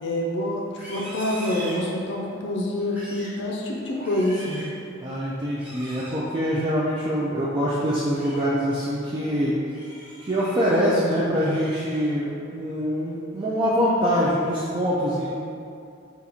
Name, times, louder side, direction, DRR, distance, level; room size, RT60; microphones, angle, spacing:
voice 1, 0.0-4.6, left 1 dB, 60° left, -1 dB, 0.5 m, -27 dB
Livestock farm animals working animals, 0.6-2.3 2.8-3.4 3.9-4.8 5.5-6.2 7.9-8.5 8.9-9.2 9.6-10.8 11.2-12.2 12.6-13.0 13.4-13.8, right 1 dB, 10° right, 1.0 m, -42 dB
voice 2, 5.0-9.5 10.3-15.3, equal, 25° right, -7 dB, 0.3 m, -24 dB
4.0 x 2.4 x 4.2 m, 2.5 s
head